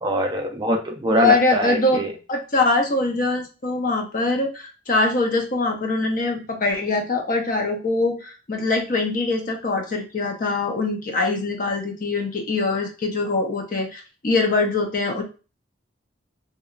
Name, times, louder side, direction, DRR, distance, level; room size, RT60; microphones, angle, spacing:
voice 1, 0.0-2.1, equal, 20° right, 2 dB, 0.3 m, -23 dB
voice 2, 1.2-2.0 2.3-15.2, left 3 dB, 45° left, 3 dB, 0.5 m, -23 dB
2.9 x 2.3 x 2.3 m, 0.33 s
head